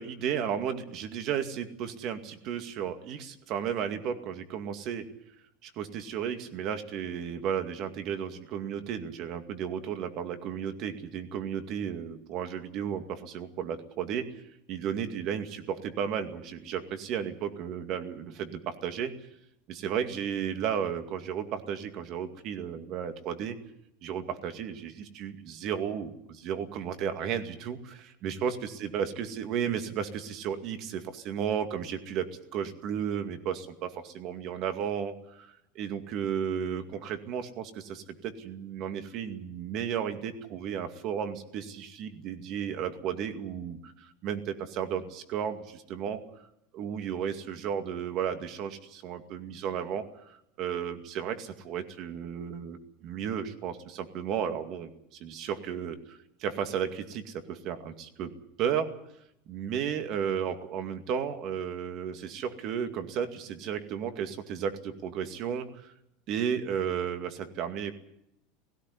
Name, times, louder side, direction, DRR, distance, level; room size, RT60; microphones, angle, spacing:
voice 1, 0.0-5.0 5.6-14.3 14.7-19.1 19.7-23.6 24.0-46.2 46.7-54.9 55.2-58.3 58.6-59.0 59.5-65.9 66.3-67.9, right 8 dB, 45° right, 8 dB, 2.2 m, -34 dB
17.0 x 16.5 x 9.8 m, 0.79 s
supercardioid pair, 145°, 0 cm